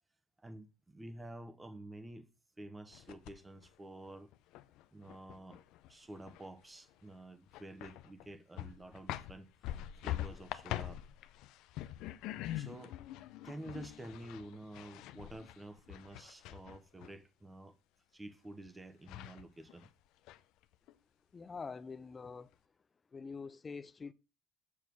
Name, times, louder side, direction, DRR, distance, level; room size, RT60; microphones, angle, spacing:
voice 1, 0.4-2.3 2.6-4.3 4.9-5.6 5.9-11.0 12.5-13.0 13.4-17.8 18.1-19.9, right 1 dB, 10° right, 1.1 m, -50 dB
sound 1, 2.9-3.7 4.1-6.6 6.9-7.0 7.5-8.3 8.6-17.1 18.7-18.8 19.1-19.9 20.3-20.9, left 14 dB, 70° left, 0.6 m, -44 dB
voice 2, 21.3-22.5 23.1-24.1, left 5 dB, 20° left, 0.5 m, -45 dB
7.3 x 6.4 x 6.2 m
cardioid pair, 140°, 0 cm